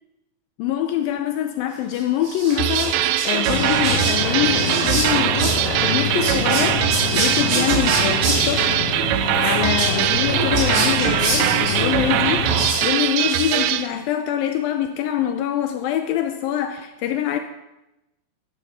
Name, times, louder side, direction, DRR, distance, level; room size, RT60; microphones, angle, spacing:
voice 1, 0.6-6.9 7.1-8.8 9.3-12.5 12.8-17.4, left 10 dB, 90° left, 6 dB, 2.0 m, -24 dB
Whispering, 1.9-13.9, right 2 dB, 60° right, 5.0 m, -27 dB
sound 1, 2.6-13.9, right 13 dB, 80° right, 2.7 m, -22 dB
sound 2, 3.5-12.7, left 4 dB, 55° left, 1.7 m, -27 dB
13.5 x 10.5 x 5.7 m, 0.94 s
omnidirectional pair, 5.0 m